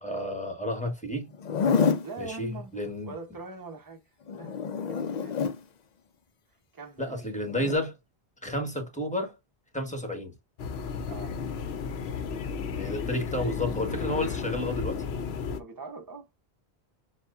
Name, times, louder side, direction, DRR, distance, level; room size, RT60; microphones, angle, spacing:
voice 1, 0.0-1.3 2.2-3.1 7.0-8.0 8.4-9.4 9.7-10.3 12.7-15.0, left 1 dB, 5° left, 1.3 m, -31 dB
Zipper (clothing), 1.3-2.1 4.3-5.6 7.5-7.8, left 5 dB, 55° left, 0.5 m, -27 dB
voice 2, 2.0-4.0 4.3-5.4 6.7-7.2 11.1-11.4 15.5-16.3, right 3 dB, 20° right, 0.9 m, -43 dB
sound 1, 10.6-15.6, left 5 dB, 80° left, 0.9 m, -33 dB
7.0 x 2.4 x 2.5 m
omnidirectional pair, 1.1 m